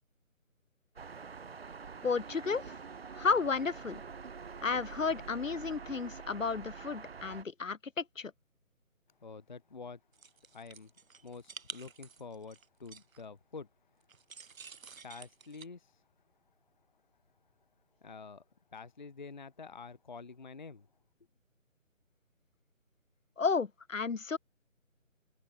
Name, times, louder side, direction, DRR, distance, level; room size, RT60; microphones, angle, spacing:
sound 1, 1.0-7.4, right 5 dB, 45° right, 1.2 m, -46 dB
voice 1, 2.0-2.8 3.1-4.0 4.6-8.3 23.4-24.4, left 5 dB, 70° left, 1.2 m, -32 dB
voice 2, 9.2-10.0 10.5-14.0 15.0-16.1 18.0-18.4 18.7-20.9, left 4 dB, 35° left, 0.7 m, -48 dB
sound 2, 10.1-13.2 14.1-15.7, right 6 dB, 80° right, 0.9 m, -50 dB
figure-of-eight pair, 155°, 40 cm